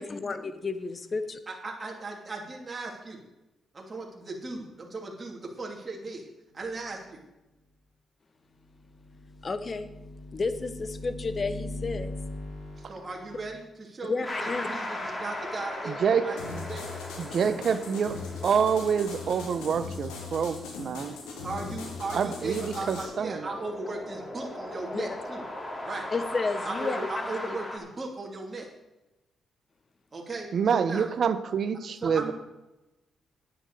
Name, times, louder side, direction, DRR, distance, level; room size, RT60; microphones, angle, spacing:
voice 1, 0.0-1.4 9.4-9.9 10.3-12.1 14.1-14.7 24.9-25.2 26.1-27.1, left 3 dB, 40° left, 1.2 m, -31 dB
voice 2, 1.5-3.2 3.7-6.3 6.5-7.2 12.8-16.4 16.7-17.0 21.4-25.4 25.8-26.1 26.6-28.7 30.1-30.5 30.7-31.1 32.0-32.3, right 3 dB, 35° right, 2.8 m, -37 dB
sound 1, 8.7-13.4, left 1 dB, 60° left, 5.3 m, -40 dB
sound 2, 14.2-27.8, left 1 dB, 25° left, 3.8 m, -39 dB
voice 3, 15.9-16.6 17.2-21.2 22.1-23.4 30.5-32.3, right 6 dB, 60° right, 0.8 m, -27 dB
sound 3, 16.4-23.0, left 5 dB, 90° left, 2.1 m, -40 dB
9.8 x 8.8 x 6.7 m
supercardioid pair, 50°, 0 cm